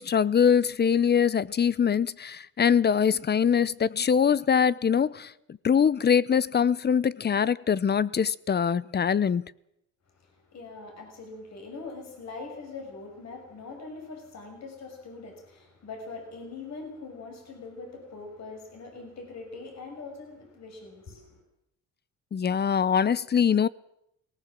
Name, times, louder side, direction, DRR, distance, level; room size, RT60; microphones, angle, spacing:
voice 1, 0.0-5.3 5.6-9.5 22.3-23.7, left 7 dB, 35° left, 0.7 m, -23 dB
voice 2, 10.2-21.4, left 3 dB, 60° left, 6.0 m, -42 dB
19.0 x 18.5 x 7.5 m
cardioid pair, 90°, 30 cm